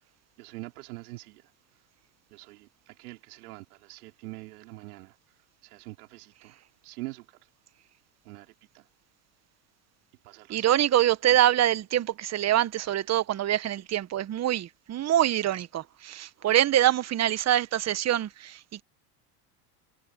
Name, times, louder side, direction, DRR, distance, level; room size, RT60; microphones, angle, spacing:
voice 1, 0.4-1.4 2.3-5.1 5.6-6.6 6.8-7.2 8.2-8.8 10.2-10.8 11.3-11.4, right 21 dB, 70° right, 4.2 m, -44 dB
voice 2, 10.5-18.6, right 12 dB, 35° right, 1.5 m, -25 dB
hypercardioid pair, 85°, 45 cm